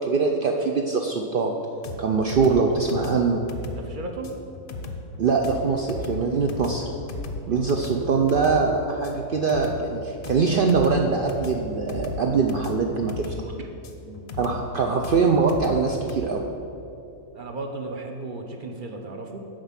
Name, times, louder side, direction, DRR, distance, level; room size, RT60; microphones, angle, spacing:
voice 1, 0.0-1.5 2.0-3.4 5.2-6.9 7.5-13.3 14.4-16.4, right 4 dB, 85° right, 1 dB, 0.4 m, -23 dB
sound 1, 1.8-16.3, left 3 dB, 50° left, 0.6 m, -36 dB
voice 2, 3.8-4.4 7.3-7.8 13.6-13.7 14.0-14.3 17.3-19.4, right 2 dB, 50° right, 3 dB, 0.7 m, -36 dB
7.4 x 5.2 x 7.3 m, 2.8 s
omnidirectional pair, 1.6 m